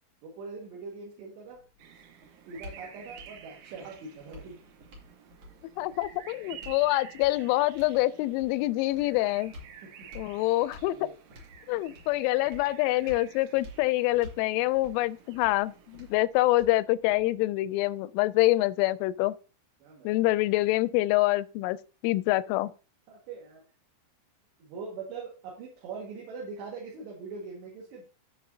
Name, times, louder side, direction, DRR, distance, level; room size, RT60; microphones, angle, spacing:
voice 1, 0.2-1.6 2.5-4.6 9.8-10.1 10.9-11.1 19.8-20.3 23.1-23.6 24.6-28.0, right 4 dB, 65° right, 3.7 m, -42 dB
sound 1, 1.5-17.5, left 1 dB, 40° right, 2.8 m, -51 dB
sound 2, 1.8-16.1, right 8 dB, 85° right, 3.5 m, -51 dB
voice 2, 5.8-9.5 10.2-11.0 11.7-19.3 20.0-21.8 22.0-22.7, left 18 dB, 85° left, 3.0 m, -26 dB
15.5 x 5.3 x 2.7 m
omnidirectional pair, 5.6 m